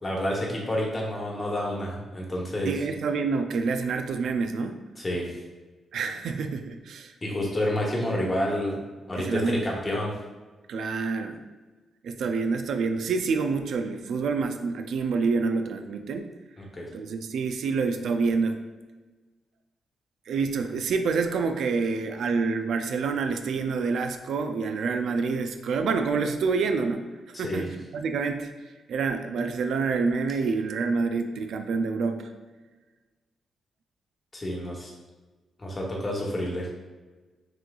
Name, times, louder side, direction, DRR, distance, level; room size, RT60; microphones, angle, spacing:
voice 1, 0.0-2.7 5.0-5.4 7.2-8.8 9.1-10.2 16.6-16.9 27.3-27.7 34.3-34.9 35.6-36.8, left 1 dB, 25° left, -2 dB, 1.2 m, -29 dB
voice 2, 2.7-4.8 5.9-7.1 9.2-9.6 10.7-11.4 12.0-16.3 16.9-18.6 20.3-28.5 28.9-32.3, right 4 dB, 80° right, 7 dB, 0.3 m, -27 dB
5.9 x 3.1 x 2.3 m, 1.2 s
cardioid pair, 95°, 0 cm